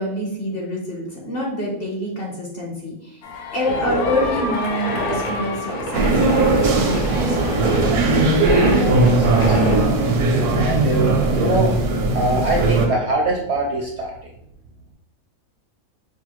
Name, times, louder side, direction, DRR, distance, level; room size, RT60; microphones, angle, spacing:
voice 1, 0.0-3.2 3.5-7.7, left 1 dB, 45° left, -2 dB, 0.9 m, -27 dB
sound 1, 3.2-10.3, left 3 dB, 80° left, 1.2 m, -32 dB
sound 2, 3.6-9.8, right 1 dB, 65° left, 1.5 m, -26 dB
sound 3, 5.9-12.9, right 2 dB, 80° right, 1.1 m, -18 dB
voice 2, 9.0-14.1, right 2 dB, 65° right, -1 dB, 0.7 m, -24 dB
4.8 x 2.2 x 3.0 m, 0.74 s
omnidirectional pair, 1.6 m